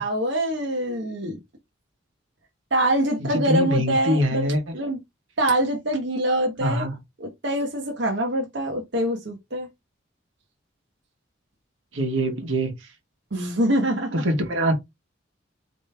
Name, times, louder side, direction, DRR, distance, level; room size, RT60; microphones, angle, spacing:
voice 1, 0.0-1.4 2.7-5.0 5.4-6.9 7.2-9.7 13.3-14.1, right 1 dB, 60° right, 1.0 m, -24 dB
voice 2, 3.2-4.7 6.6-7.0 11.9-12.7 14.1-14.7, equal, 90° right, 1.4 m, -24 dB
4.3 x 3.2 x 3.4 m
head